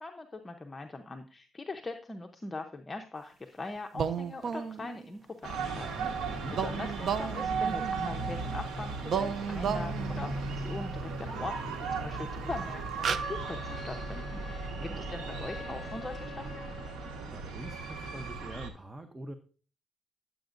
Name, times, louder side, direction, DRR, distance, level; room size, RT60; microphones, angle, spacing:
voice 1, 0.0-16.6, left 3 dB, 20° left, 4 dB, 0.7 m, -41 dB
sound 1, 3.9-5.1 6.5-8.6 9.0-10.5 12.0-12.1 12.6-12.7 13.0-13.2, right 7 dB, 55° right, 0.6 m, -34 dB
sound 2, 5.4-18.7, right 4 dB, 80° right, 1.4 m, -36 dB
voice 2, 6.3-6.6 14.5-15.1 17.3-19.3, right 1 dB, 15° right, 8 dB, 0.8 m, -44 dB
Wind instrument woodwind instrument, 13.2-17.3, left 5 dB, 40° left, 1.2 m, -47 dB
10.5 x 8.0 x 2.6 m, 0.38 s
cardioid pair, 90°, 0 cm